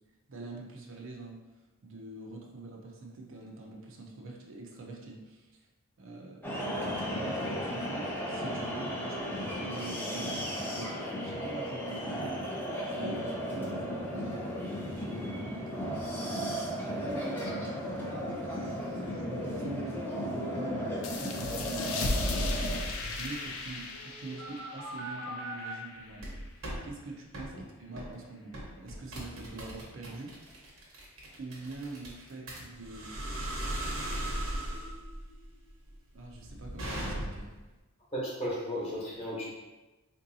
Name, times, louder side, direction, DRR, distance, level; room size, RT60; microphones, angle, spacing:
voice 1, 0.3-1.4 1.8-5.5 6.0-6.7 7.1-12.6 12.9-18.0 18.5-26.4 26.8-30.3 31.4-33.2 36.1-37.5, right 2 dB, 65° right, 0 dB, 0.5 m, -45 dB
sound 1, 6.4-22.8, equal, 10° left, 0.5 m, -35 dB
sound 2, 21.0-26.3, left 2 dB, 65° left, 0.5 m, -35 dB
sound 3, 23.9-25.7 26.2-26.8 27.3-27.5 28.0-28.2 28.5-37.6, right 1 dB, 85° right, 1.0 m, -38 dB
voice 2, 38.1-39.5, equal, 30° left, -6 dB, 1.0 m, -34 dB
3.7 x 2.6 x 2.7 m, 1.1 s
head